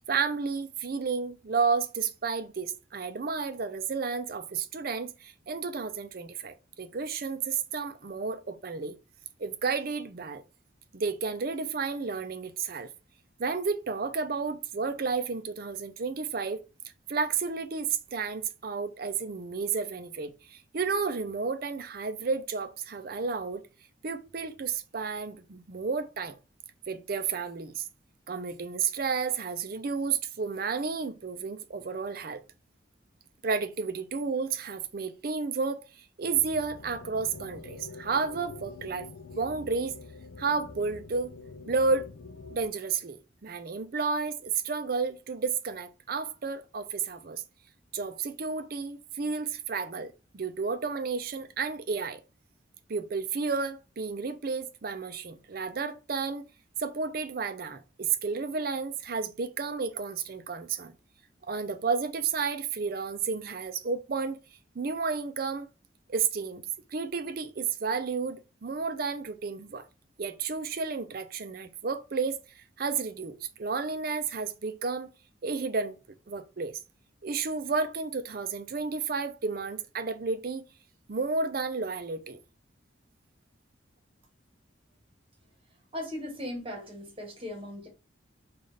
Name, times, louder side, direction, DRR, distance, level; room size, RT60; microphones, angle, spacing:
voice 1, 0.1-9.0 9.4-10.4 10.9-12.9 13.4-16.6 17.1-23.6 24.0-26.4 26.9-27.9 28.3-32.4 33.4-39.1 39.3-40.0 40.4-41.3 41.7-42.1 42.5-47.4 47.9-52.2 52.9-56.5 56.8-60.9 61.5-64.4 64.7-65.7 66.1-66.6 66.9-69.8 70.2-75.1 75.4-75.9 76.3-76.8 77.2-80.6 81.1-82.4, right 5 dB, 50° right, 0.5 m, -32 dB
sound 1, 36.2-42.7, left 4 dB, 65° left, 0.4 m, -46 dB
voice 2, 85.9-87.9, left 1 dB, 30° right, 1.1 m, -38 dB
4.0 x 2.5 x 3.2 m
head